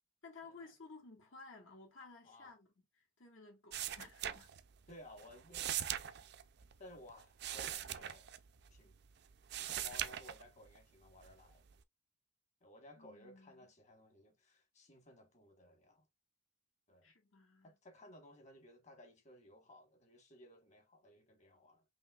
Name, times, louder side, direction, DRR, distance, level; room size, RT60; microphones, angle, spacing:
voice 1, 0.2-4.5 13.0-13.7 17.0-17.8, left 3 dB, 70° left, 1.9 m, -56 dB
sound 1, 3.7-4.9 5.2-9.0 9.3-10.8 11.2-11.8, right 11 dB, 55° right, 0.4 m, -41 dB
voice 2, 4.9-5.7 6.8-8.3 8.7-8.9 9.5-11.6 12.6-16.1 16.9-17.1 17.6-21.8, left 1 dB, 35° left, 1.4 m, -58 dB
5.5 x 3.1 x 2.4 m
head